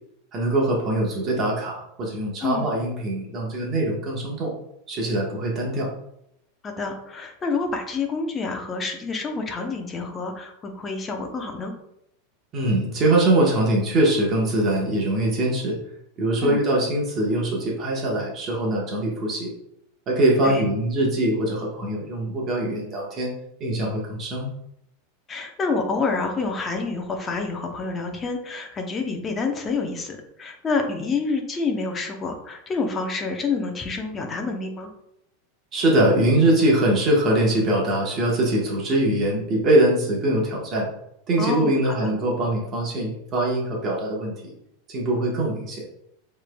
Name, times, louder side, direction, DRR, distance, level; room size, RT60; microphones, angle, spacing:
voice 1, 0.3-4.5 4.9-5.9 12.5-15.8 16.2-19.5 20.1-23.3 23.6-24.5 35.7-40.9 41.3-44.3 44.9-45.8, right 1 dB, 30° right, -2 dB, 1.2 m, -22 dB
voice 2, 6.6-11.7 16.4-16.6 20.4-20.7 25.3-34.9 41.4-42.1, left 4 dB, 20° left, 3 dB, 0.8 m, -28 dB
7.1 x 3.3 x 2.3 m, 0.79 s
supercardioid pair, 150°, 0 cm